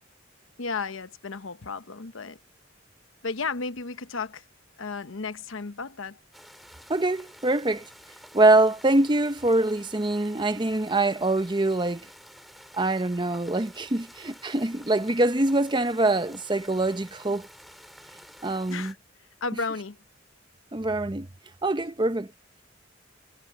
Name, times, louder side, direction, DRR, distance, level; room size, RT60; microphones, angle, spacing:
voice 1, 0.6-2.4 3.2-4.4 4.8-6.2 18.7-19.0 19.4-20.0, left 4 dB, 85° left, 1.0 m, -33 dB
sound 1, 6.3-18.9, equal, ahead, 5.4 m, -50 dB
voice 2, 6.9-7.9 8.3-12.1 12.7-17.5 18.4-18.9 20.7-21.3 21.6-22.3, right 2 dB, 25° right, 0.8 m, -24 dB
head